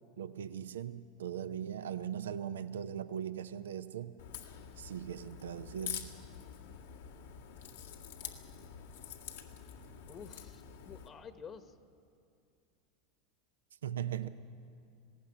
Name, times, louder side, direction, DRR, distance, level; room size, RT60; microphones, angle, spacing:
voice 1, 0.2-4.1 4.8-6.1 13.8-14.3, right 9 dB, 85° right, 12 dB, 0.6 m, -39 dB
Crack, 4.2-11.1, left 9 dB, 80° left, 1.9 m, -46 dB
voice 2, 10.1-11.7 14.2-14.3, left 6 dB, 35° left, 9 dB, 1.2 m, -50 dB
19.5 x 16.0 x 9.9 m, 2.5 s
hypercardioid pair, 105°, 0 cm